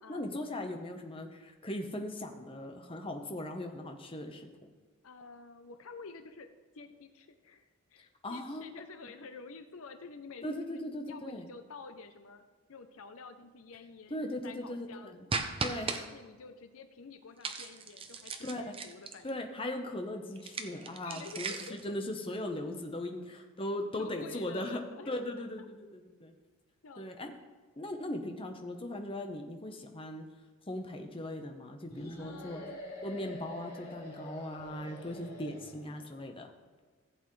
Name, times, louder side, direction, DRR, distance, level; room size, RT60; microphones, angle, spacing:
voice 1, 0.1-4.5 8.2-8.7 10.4-11.4 14.1-15.2 15.6-16.0 18.4-18.7 19.2-24.8 25.1-26.3 27.0-27.3 27.8-30.2 30.7-32.6 33.0-36.5, left 1 dB, 25° left, 4 dB, 0.9 m, -39 dB
voice 2, 5.0-12.4 12.7-15.2 15.7-19.4 21.0-21.9 22.3-22.4 23.2-23.3 24.0-25.7 26.8-27.1 32.2-32.8, left 4 dB, 65° left, 9 dB, 0.6 m, -50 dB
sound 1, 15.3-16.0 17.4-19.3 20.4-21.8, right 4 dB, 25° right, 0.6 m, -37 dB
sound 2, 31.9-36.1, left 1 dB, 40° left, 3.3 m, -46 dB
15.5 x 8.2 x 3.2 m, 1.4 s
head